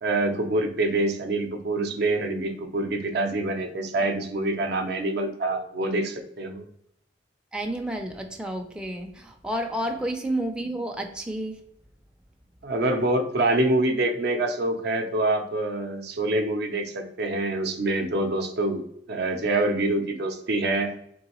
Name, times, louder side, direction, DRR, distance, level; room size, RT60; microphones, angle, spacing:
voice 1, 0.0-6.6 12.6-18.8 19.1-20.9, right 2 dB, 65° right, 6 dB, 0.5 m, -26 dB
voice 2, 7.5-11.6, right 1 dB, 5° right, 2 dB, 0.4 m, -30 dB
3.8 x 3.1 x 2.9 m, 0.73 s
head